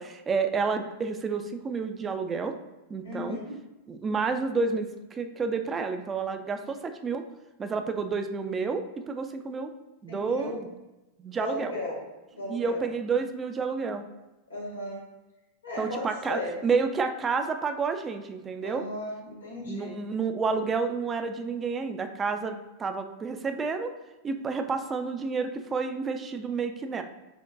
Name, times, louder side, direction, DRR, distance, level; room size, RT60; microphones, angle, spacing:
voice 1, 0.0-2.5 2.9-3.4 3.9-7.2 7.6-9.7 10.0-10.7 11.2-11.8 12.5-14.1 15.8-18.9 19.7-23.9 24.2-27.0, right 4 dB, 20° right, 7 dB, 0.3 m, -30 dB
voice 2, 3.0-3.6 10.1-10.6 11.3-12.0 12.3-12.9 14.5-15.0 15.6-16.5 18.6-19.9, left 1 dB, 80° left, -3 dB, 1.2 m, -36 dB
6.0 x 2.2 x 2.5 m, 1.0 s
figure-of-eight pair, 90°, 0 cm